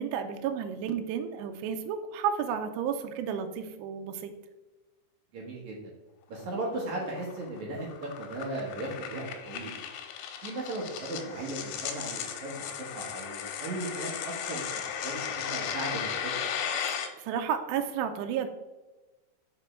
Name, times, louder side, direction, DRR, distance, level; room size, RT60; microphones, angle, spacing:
voice 1, 0.0-4.3 17.2-18.5, right 8 dB, 85° right, 6 dB, 2.6 m, -32 dB
voice 2, 5.3-5.8 6.3-7.9 8.2-9.8 10.4-12.6 12.9-14.1 14.5-16.3, right 2 dB, 70° right, -3 dB, 1.9 m, -36 dB
sound 1, 6.4-17.1, left 8 dB, 90° left, 2.9 m, -36 dB
6.1 x 5.0 x 4.4 m, 1.1 s
omnidirectional pair, 5.1 m